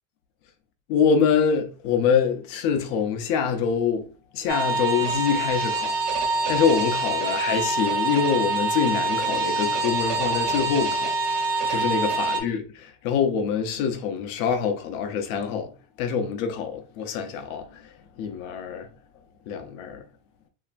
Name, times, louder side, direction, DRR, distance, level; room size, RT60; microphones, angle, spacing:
voice 1, 0.9-4.1 4.3-5.9 6.5-11.1 11.7-12.6 13.0-15.7 16.0-17.8 18.2-18.9 19.5-20.0, left 6 dB, 75° left, 0.8 m, -25 dB
sound 1, 4.5-12.4, right 3 dB, 70° right, 1.1 m, -25 dB
3.2 x 2.7 x 2.5 m
cardioid pair, 155°, 40 cm